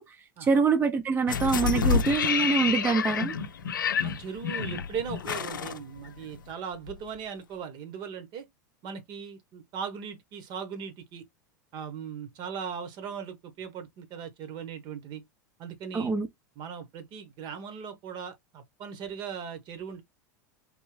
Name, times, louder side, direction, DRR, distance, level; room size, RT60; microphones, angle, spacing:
voice 1, 0.0-3.3 15.9-16.3, right 5 dB, 20° right, 0.6 m, -25 dB
sound 1, 1.3-6.5 6.9-7.0, left 6 dB, 80° left, 0.5 m, -28 dB
voice 2, 4.0-8.5 8.8-11.2 11.7-15.2 15.6-16.1 16.6-20.0, right 7 dB, 45° right, 1.1 m, -38 dB
3.6 x 3.0 x 3.1 m
hypercardioid pair, 90°, 11 cm